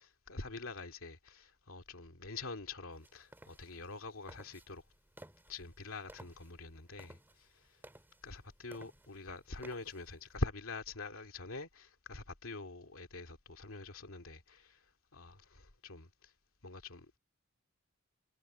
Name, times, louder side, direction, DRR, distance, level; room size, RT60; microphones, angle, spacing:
voice 1, 0.3-4.8 5.5-7.5 8.2-14.8 15.1-16.3 16.6-17.1, left 2 dB, 75° left, 2.4 m, -44 dB
sound 1, 2.9-10.4, right 1 dB, 10° right, 2.2 m, -59 dB
head